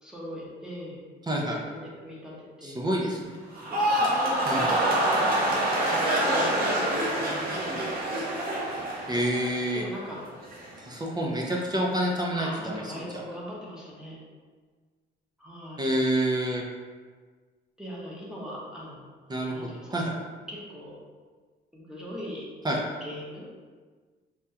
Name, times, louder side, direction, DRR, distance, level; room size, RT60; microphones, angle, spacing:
voice 1, 0.0-1.0 1.4-2.3 2.6-3.1 3.7-5.2 5.8-7.3 9.7-10.2 12.3-14.2 15.4-15.9 17.8-19.0 19.5-19.9 20.5-21.0 21.7-22.4 23.0-23.4, equal, 5° right, -6 dB, 0.9 m, -40 dB
voice 2, 1.3-1.6 2.6-3.3 4.5-4.7 9.1-9.8 10.8-12.8 15.8-16.6 19.3-20.1 22.6-22.8, right 1 dB, 20° right, -1 dB, 0.5 m, -28 dB
sound 1, 3.5-9.8 10.2-10.7, right 1 dB, 50° right, 0.9 m, -26 dB
3.5 x 2.3 x 2.7 m, 1.5 s
cardioid pair, 90°, 20 cm